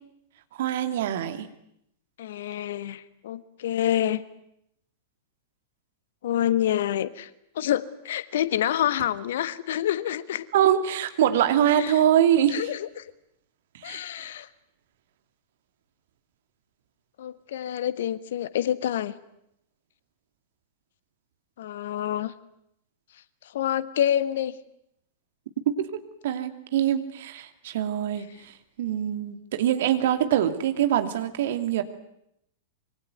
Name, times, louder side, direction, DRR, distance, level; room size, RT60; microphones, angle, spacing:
voice 1, 0.6-1.5 10.5-12.7 13.8-14.0 25.7-25.9 26.2-31.8, right 10 dB, 55° right, 8 dB, 2.6 m, -24 dB
voice 2, 2.2-4.2 6.2-7.3 7.5-10.5 11.8-12.0 12.5-13.1 13.8-14.5 17.2-19.1 21.6-22.3 23.5-24.5, left 11 dB, 55° left, 15 dB, 1.4 m, -27 dB
26.0 x 23.5 x 9.4 m, 0.78 s
figure-of-eight pair, 95°, 0 cm